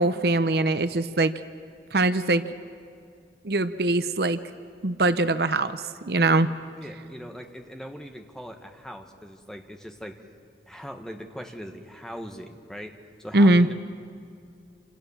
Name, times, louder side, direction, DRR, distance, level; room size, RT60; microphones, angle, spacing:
voice 1, 0.0-1.3 1.9-2.4 3.4-4.4 4.8-6.5 13.3-13.7, right 2 dB, 65° right, 12 dB, 0.8 m, -22 dB
voice 2, 6.8-10.2 10.7-12.9 13.2-13.7, equal, 5° left, 4 dB, 1.6 m, -40 dB
27.5 x 27.5 x 7.3 m, 2.5 s
head